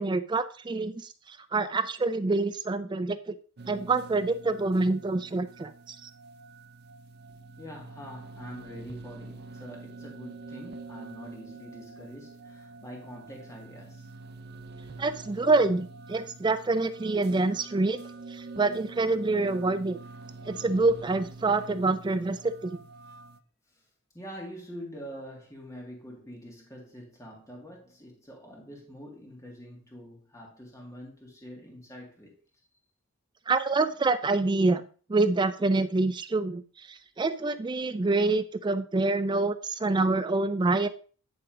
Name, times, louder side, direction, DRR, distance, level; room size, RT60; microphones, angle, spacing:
voice 1, 0.0-3.3 3.7-6.1 15.0-18.0 18.3-20.0 20.4-22.8 33.5-34.8 35.1-40.9, right 3 dB, 20° right, 0.3 m, -26 dB
sound 1, 3.6-23.4, right 3 dB, 45° right, 0.7 m, -46 dB
voice 2, 7.6-14.1 23.7-23.9 24.1-32.3, equal, 15° left, 2.0 m, -45 dB
10.5 x 3.7 x 4.9 m
head